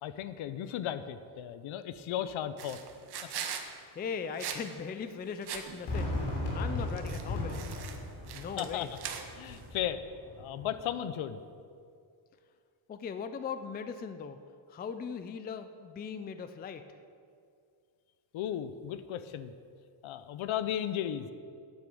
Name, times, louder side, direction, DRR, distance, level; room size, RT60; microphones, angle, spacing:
voice 1, 0.0-2.8 8.6-8.9 9.4-10.0 10.4-11.4 18.3-19.5 20.0-21.3, left 10 dB, 75° left, 12 dB, 0.8 m, -35 dB
sound 1, 2.6-3.7 4.4-4.7 4.9-5.0 5.4-5.9 6.8-9.7, right 8 dB, 55° right, 1.1 m, -41 dB
voice 2, 4.0-6.1 6.5-7.6 8.3-8.9 12.9-14.4 14.7-16.9, left 6 dB, 20° left, 10 dB, 0.3 m, -39 dB
Fireworks, 5.9-10.9, left 2 dB, 55° left, 3.2 m, -37 dB
9.5 x 8.9 x 7.8 m, 2.3 s
cardioid pair, 175°, 48 cm